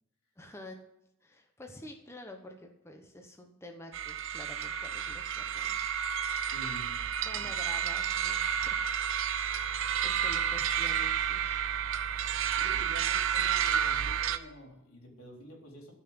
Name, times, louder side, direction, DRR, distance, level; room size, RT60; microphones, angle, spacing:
voice 1, 0.4-0.8 1.2-5.8 7.2-8.9 10.0-11.7, left 1 dB, 10° left, 3 dB, 1.0 m, -48 dB
sound 1, 3.9-14.4, right 9 dB, 60° right, 0.7 m, -31 dB
voice 2, 6.4-7.0 7.4-7.5 12.2-15.9, equal, 85° left, 0 dB, 3.9 m, -48 dB
13.5 x 5.8 x 7.9 m, 0.83 s
head